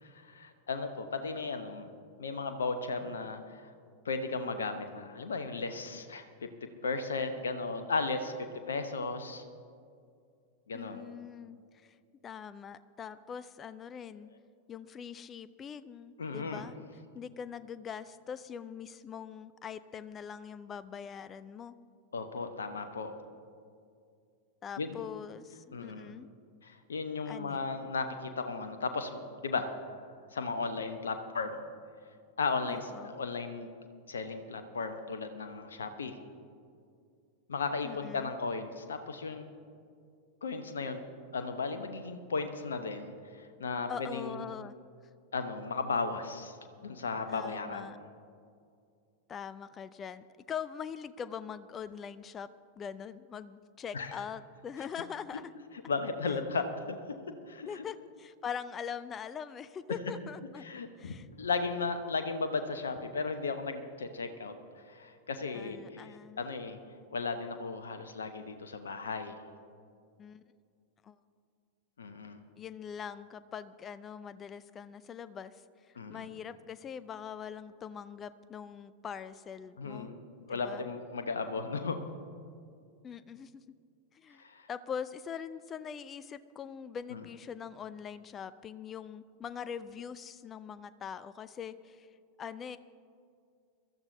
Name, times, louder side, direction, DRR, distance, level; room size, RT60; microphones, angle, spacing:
voice 1, 0.0-1.9 2.2-3.7 4.0-8.3 8.7-9.4 10.7-11.0 16.2-16.7 22.1-23.1 24.8-25.0 25.7-26.1 26.6-29.8 30.3-31.6 32.4-33.7 34.1-36.2 37.5-39.4 40.4-41.0 41.3-44.5 45.3-46.6 46.8-48.0 53.9-54.1 55.9-57.2 57.5-57.8 60.6-64.5 64.9-66.8 67.1-69.3 72.0-72.4 76.0-76.3 79.8-80.2 80.5-82.0 84.4-84.7 87.1-87.2, left 4 dB, 70° left, 7 dB, 0.9 m, -35 dB
voice 2, 10.7-11.9 12.2-14.3 14.7-16.8 17.1-21.7 24.6-26.3 27.3-27.7 32.7-33.1 37.8-38.3 43.9-44.7 47.3-48.0 49.3-52.5 52.8-55.5 56.3-56.4 57.7-60.7 61.0-61.3 65.5-66.4 70.2-70.4 71.0-71.2 72.6-80.1 80.5-80.8 83.0-83.6 84.1-84.4 84.7-92.1 92.4-92.8, left 7 dB, 25° left, 15 dB, 0.5 m, -43 dB
23.0 x 13.5 x 2.7 m, 2.3 s
figure-of-eight pair, 90°, 0 cm